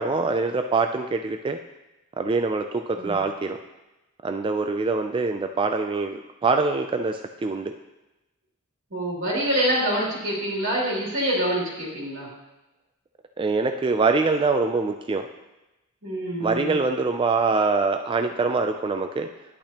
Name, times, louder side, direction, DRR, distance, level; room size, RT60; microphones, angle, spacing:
voice 1, 0.0-1.6 2.2-3.6 4.2-7.7 13.4-15.3 16.4-19.3, right 4 dB, 25° right, 6 dB, 0.3 m, -24 dB
voice 2, 8.9-12.3 16.0-16.8, equal, 65° right, -5 dB, 2.7 m, -26 dB
10.5 x 8.4 x 2.9 m, 1.0 s
head